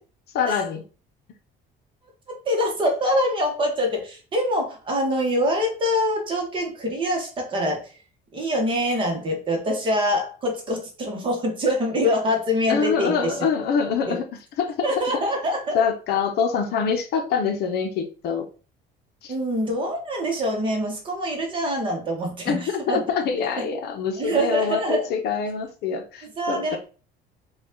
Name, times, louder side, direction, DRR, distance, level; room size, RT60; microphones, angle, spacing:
voice 1, 0.3-0.8 12.7-14.2 14.6-14.9 15.7-18.4 19.2-19.3 22.5-26.8, left 6 dB, 60° left, 0.7 m, -25 dB
voice 2, 2.5-7.9 8.3-13.3 14.1-14.2 14.8-15.8 19.3-23.0 23.6-23.7 24.2-25.1 26.4-26.8, equal, 25° right, 1.0 m, -24 dB
5.0 x 2.3 x 3.7 m
cardioid pair, 180°, 19 cm